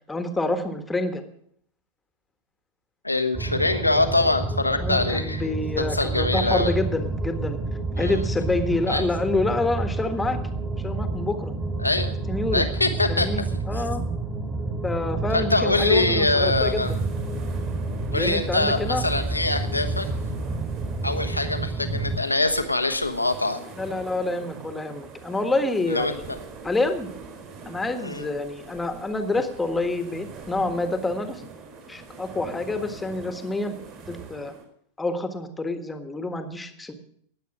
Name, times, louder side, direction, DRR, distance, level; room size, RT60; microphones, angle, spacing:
voice 1, 0.1-1.2 4.8-7.6 8.0-10.4 10.8-11.5 12.3-12.7 13.1-14.1 14.8-17.0 18.1-19.0 23.7-26.3 26.6-27.1 27.6-31.4 31.9-33.7 34.1-34.5 35.0-36.9, left 2 dB, 10° left, 8 dB, 1.6 m, -27 dB
voice 2, 3.0-5.5 5.8-6.7 8.0-8.2 8.9-9.1 11.8-12.2 12.5-13.5 13.7-13.8 15.3-16.9 18.1-20.1 21.0-23.6 25.9-26.4 28.0-28.3, left 2 dB, 85° left, 8 dB, 1.3 m, -24 dB
sound 1, 3.3-22.2, right 3 dB, 15° right, 2.2 m, -29 dB
sound 2, 16.4-34.6, right 4 dB, 40° right, 4.3 m, -43 dB
19.5 x 8.1 x 6.1 m, 0.66 s
figure-of-eight pair, 90°, 0 cm